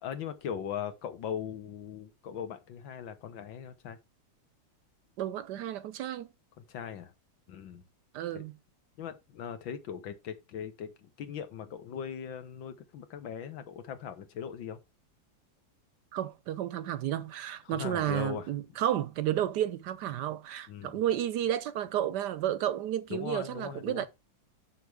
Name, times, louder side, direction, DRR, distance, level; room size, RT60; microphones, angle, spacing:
voice 1, 0.0-4.0 6.6-7.1 7.5-7.8 8.3-8.4 9.0-14.8 17.7-18.5 20.7-21.0 23.1-24.1, left 8 dB, 80° left, 1.9 m, -39 dB
voice 2, 5.2-6.3 8.1-8.5 16.1-24.1, right 11 dB, 70° right, 1.1 m, -32 dB
7.1 x 6.0 x 4.7 m
omnidirectional pair, 2.1 m